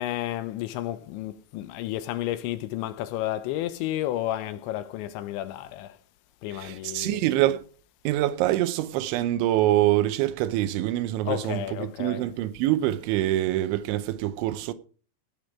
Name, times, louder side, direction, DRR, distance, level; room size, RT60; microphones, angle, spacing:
voice 1, 0.0-6.0 6.4-7.2 11.2-12.2, left 13 dB, 80° left, 2.8 m, -31 dB
voice 2, 6.5-7.6 8.0-14.7, right 14 dB, 80° right, 3.0 m, -25 dB
18.0 x 6.8 x 4.8 m
omnidirectional pair, 5.5 m